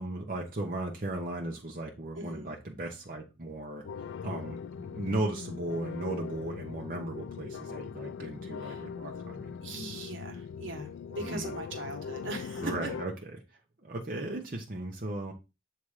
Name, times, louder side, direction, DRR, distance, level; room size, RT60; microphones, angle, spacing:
voice 1, 0.0-3.9 4.2-9.6 11.2-11.6 12.6-13.1 13.8-15.3, right 1 dB, 45° right, 0.9 m, -36 dB
voice 2, 2.1-2.5 8.6-8.9 9.6-12.9, right 2 dB, 80° right, 1.4 m, -40 dB
sound 1, 3.8-13.1, left 6 dB, 75° left, 0.3 m, -40 dB
7.3 x 3.0 x 4.8 m
head